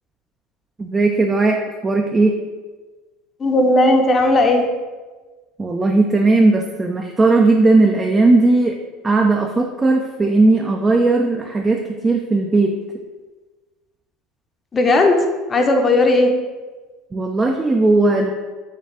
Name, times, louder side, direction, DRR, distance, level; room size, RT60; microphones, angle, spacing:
voice 1, 0.8-2.4 5.6-8.7 9.0-12.7 17.1-18.3, right 2 dB, 20° right, 2 dB, 0.4 m, -16 dB
voice 2, 3.4-4.6 14.7-15.2 15.5-16.3, left 2 dB, 30° left, 4 dB, 0.7 m, -15 dB
6.5 x 2.4 x 3.4 m, 1.3 s
supercardioid pair, 100°, 0 cm